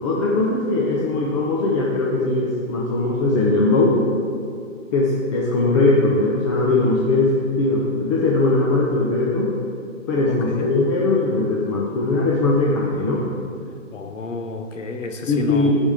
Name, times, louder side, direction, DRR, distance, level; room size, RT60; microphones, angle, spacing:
voice 1, 0.0-4.0 4.9-9.5 10.1-13.2 15.3-15.7, left 2 dB, 25° left, -4 dB, 0.8 m, -20 dB
voice 2, 10.3-10.7 13.9-15.7, left 3 dB, 70° left, 5 dB, 1.1 m, -31 dB
12.0 x 5.3 x 5.0 m, 2.4 s
hypercardioid pair, 145°, 39 cm